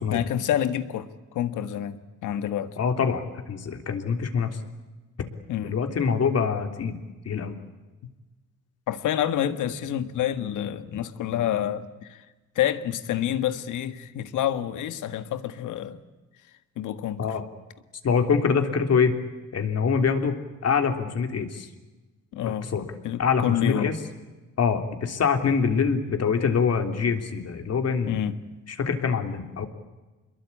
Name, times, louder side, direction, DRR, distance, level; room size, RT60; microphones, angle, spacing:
voice 1, 0.1-1.1 1.3-2.7 5.5-5.8 8.9-12.2 12.6-16.0 16.8-17.2 22.3-22.7 23.0-24.0 28.1-28.4, left 11 dB, 85° left, 1.7 m, -28 dB
voice 2, 2.8-4.6 5.2-5.3 5.6-7.0 7.3-7.5 17.2-17.4 18.0-19.2 19.5-21.7 22.4-22.9 23.2-23.9 24.6-28.2 28.7-29.7, left 6 dB, 55° left, 3.4 m, -25 dB
26.5 x 22.0 x 8.7 m
cardioid pair, 90°, 30 cm